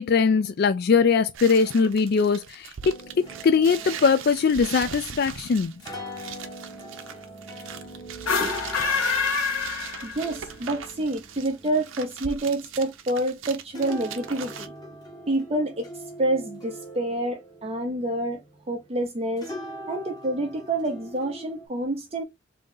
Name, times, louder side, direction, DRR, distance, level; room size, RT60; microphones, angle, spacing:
voice 1, 0.0-2.9 3.4-5.8, left 5 dB, 50° left, 0.3 m, -21 dB
sound 1, 1.3-14.7, right 8 dB, 75° right, 0.6 m, -40 dB
sound 2, 2.8-19.0 19.4-21.7, right 1 dB, 20° left, 1.3 m, -43 dB
sound 3, 8.1-10.5, left 5 dB, 90° left, 1.6 m, -26 dB
voice 2, 10.0-14.7 15.3-15.9 16.2-18.4 18.7-19.5 19.9-22.2, right 1 dB, 30° right, 0.7 m, -28 dB
3.8 x 2.8 x 3.7 m
head